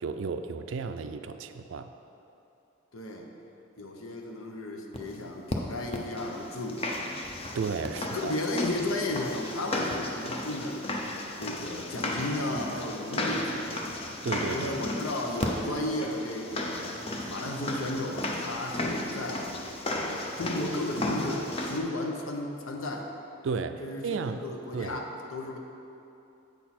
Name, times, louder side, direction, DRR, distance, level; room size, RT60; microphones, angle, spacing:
voice 1, 0.0-1.9 7.5-8.3 14.2-14.8 23.4-24.4 24.7-25.0, right 5 dB, 65° right, 9 dB, 0.3 m, -33 dB
voice 2, 2.9-3.3 3.8-7.1 7.9-10.9 11.4-14.0 14.5-16.9 17.3-19.5 20.0-23.1 23.8-25.0 25.3-25.6, left 1 dB, 90° left, 2 dB, 0.8 m, -34 dB
sound 1, 4.9-5.0 5.5-5.6 5.9-21.8, left 1 dB, 30° left, 0.6 m, -34 dB
8.3 x 6.2 x 4.2 m, 2.8 s
head